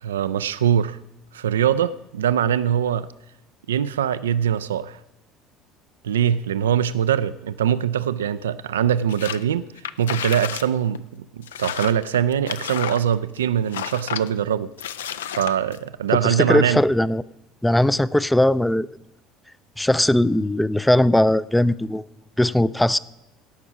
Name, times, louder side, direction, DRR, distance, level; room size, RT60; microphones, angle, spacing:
voice 1, 0.0-1.0 1.3-3.1 3.7-5.0 6.0-9.7 10.0-11.0 11.3-14.7 15.3-16.8, right 9 dB, 75° right, 15 dB, 0.3 m, -22 dB
sound 1, 9.1-9.4 9.8-10.7 11.0-11.1 11.4-13.4 13.7-14.3 14.8-15.8, left 9 dB, 70° left, 0.4 m, -31 dB
voice 2, 16.2-17.2 17.6-18.9 19.8-22.1 22.4-23.0, left 1 dB, 5° left, 18 dB, 0.4 m, -19 dB
17.5 x 6.1 x 6.0 m, 0.97 s
figure-of-eight pair, 60°, 0 cm